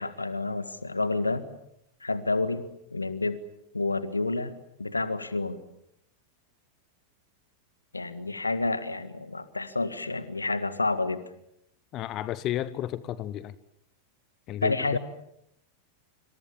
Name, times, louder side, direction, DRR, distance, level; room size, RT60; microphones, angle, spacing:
voice 1, 0.0-1.5 2.0-2.6 2.9-3.4 3.7-4.5 4.8-5.6 7.9-11.2 14.6-15.0, left 3 dB, 80° left, 13 dB, 1.8 m, -29 dB
voice 2, 11.9-13.5 14.5-14.7, left 13 dB, 35° left, 17 dB, 1.0 m, -32 dB
26.5 x 26.5 x 7.3 m, 0.79 s
figure-of-eight pair, 90°, 0 cm